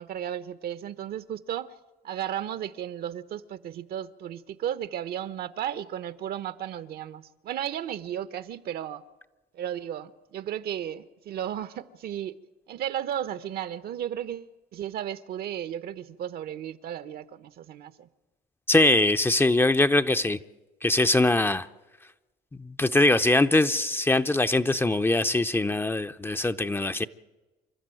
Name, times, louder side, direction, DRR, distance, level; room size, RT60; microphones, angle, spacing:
voice 1, 0.0-1.7 2.0-9.0 9.5-12.4 12.7-18.1, right 10 dB, 65° right, 1.0 m, -34 dB
voice 2, 18.7-20.4 20.8-21.7 22.6-27.1, left 2 dB, 15° left, 0.6 m, -22 dB
27.0 x 12.5 x 9.0 m
cardioid pair, 110°, 17 cm